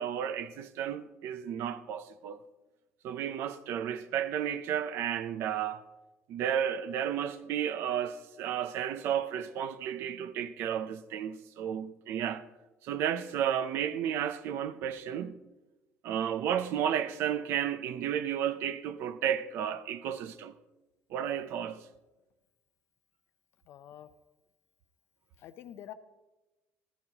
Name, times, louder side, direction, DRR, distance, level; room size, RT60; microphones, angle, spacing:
voice 1, 0.0-2.4 3.0-5.8 6.3-12.5 12.8-15.4 16.0-20.6 21.1-21.9, right 9 dB, 55° right, 0.6 m, -32 dB
voice 2, 23.7-24.1 25.4-25.9, left 11 dB, 50° left, 0.6 m, -46 dB
14.5 x 14.0 x 2.9 m
cardioid pair, 180°, 5 cm